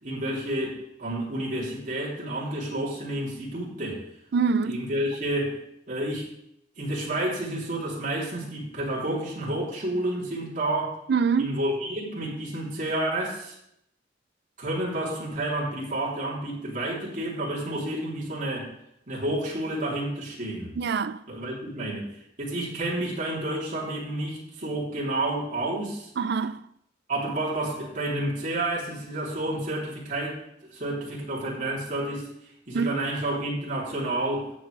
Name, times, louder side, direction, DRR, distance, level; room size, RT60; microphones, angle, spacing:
voice 1, 0.0-4.0 4.6-6.3 6.8-11.0 11.4-13.6 14.6-18.7 19.1-20.8 21.3-26.1 27.1-32.3 32.7-34.5, right 1 dB, 45° right, 3.3 m, -30 dB
voice 2, 4.3-4.8 11.1-11.6 20.8-21.2 26.2-26.6 32.7-33.0, right 5 dB, 65° right, 0.4 m, -25 dB
13.5 x 8.0 x 3.3 m
head